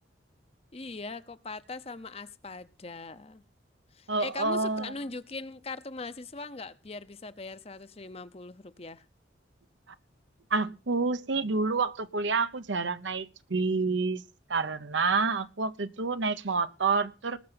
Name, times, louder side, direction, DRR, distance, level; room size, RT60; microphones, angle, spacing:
voice 1, 0.7-3.4 3.9-9.0, left 3 dB, 30° left, 0.7 m, -40 dB
voice 2, 4.1-4.9 10.5-14.2 14.5-17.4, right 4 dB, 75° right, 1.0 m, -28 dB
19.5 x 6.7 x 5.8 m
head